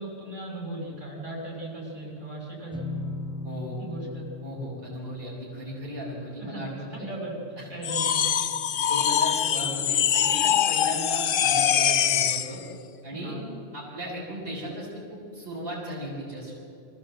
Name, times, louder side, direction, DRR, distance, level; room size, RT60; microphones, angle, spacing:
voice 1, 0.0-2.9 3.8-4.3 6.4-7.4 7.7-8.5 13.1-13.5, right 1 dB, 80° right, -3 dB, 6.2 m, -37 dB
sound 1, 2.7-8.3, left 3 dB, 5° left, 1.5 m, -39 dB
voice 2, 3.4-3.8 4.4-7.1 7.6-7.7 8.7-12.6 13.0-13.4 13.7-16.6, equal, 50° right, -4 dB, 5.0 m, -36 dB
sound 2, 7.8-12.6, left 9 dB, 55° left, 0.7 m, -23 dB
25.5 x 15.5 x 7.6 m, 2.6 s
omnidirectional pair, 1.3 m